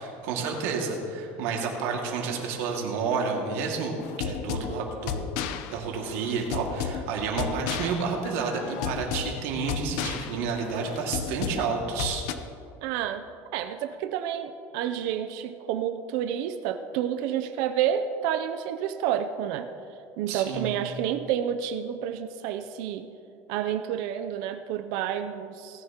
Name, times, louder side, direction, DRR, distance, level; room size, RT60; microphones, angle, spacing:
voice 1, 0.0-5.3 5.7-12.3 20.3-20.7, right 5 dB, 85° right, 0 dB, 2.1 m, -30 dB
sound 1, 4.0-12.3, left 8 dB, 75° left, 0.7 m, -34 dB
voice 2, 12.8-13.3 13.5-19.7 20.2-23.1 23.5-25.8, right 9 dB, 70° right, 8 dB, 0.5 m, -29 dB
18.5 x 10.0 x 2.9 m, 2.6 s
cardioid pair, 155°, 7 cm